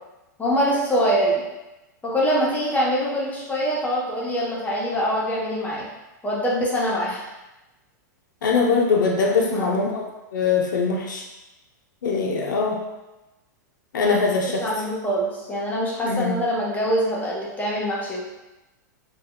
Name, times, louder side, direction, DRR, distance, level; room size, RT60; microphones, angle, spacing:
voice 1, 0.4-1.4 2.0-5.8 6.2-7.3 9.3-9.7 14.0-14.2 14.6-18.3, equal, 15° left, -5 dB, 0.8 m, -24 dB
voice 2, 8.4-10.0 10.3-11.2 12.0-12.8 13.9-14.6 16.0-16.4, left 4 dB, 85° left, -1 dB, 0.5 m, -22 dB
2.2 x 2.1 x 3.6 m, 1.0 s
hypercardioid pair, 120°, 10 cm